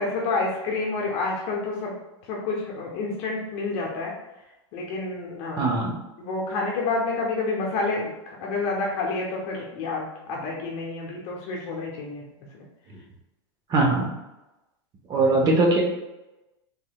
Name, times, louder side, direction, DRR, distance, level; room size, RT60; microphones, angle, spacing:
voice 1, 0.0-1.9 2.3-4.1 4.7-5.7 6.2-12.2 12.5-12.6, left 3 dB, 50° left, -2 dB, 0.8 m, -29 dB
voice 2, 5.5-5.9 13.7-14.1 15.1-15.8, right 2 dB, 30° right, 0 dB, 0.8 m, -20 dB
3.5 x 3.1 x 2.3 m, 0.99 s
hypercardioid pair, 120°, 14 cm